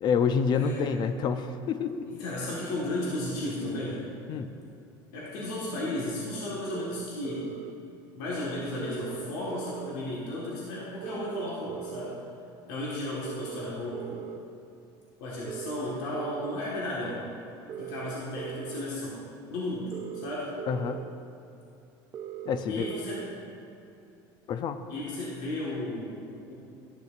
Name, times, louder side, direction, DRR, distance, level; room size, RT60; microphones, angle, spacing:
voice 1, 0.0-2.1 4.3-4.5 20.7-21.0 22.5-22.9 24.5-24.8, left 6 dB, 45° left, 10 dB, 0.5 m, -28 dB
voice 2, 0.6-0.9 2.1-4.0 5.1-7.5 8.1-12.2 12.7-14.2 15.2-17.2 17.8-19.2 19.5-20.5 22.6-23.2 24.9-26.5, left 1 dB, 85° left, -6 dB, 1.5 m, -34 dB
sound 1, 6.7-7.7 8.8-9.9 11.0-12.2 13.2-14.4 15.5-16.6 17.7-18.8 19.9-21.0 22.1-23.3, right 11 dB, 35° right, 0.4 m, -39 dB
11.5 x 6.8 x 2.5 m, 2.8 s
supercardioid pair, 115°, 10 cm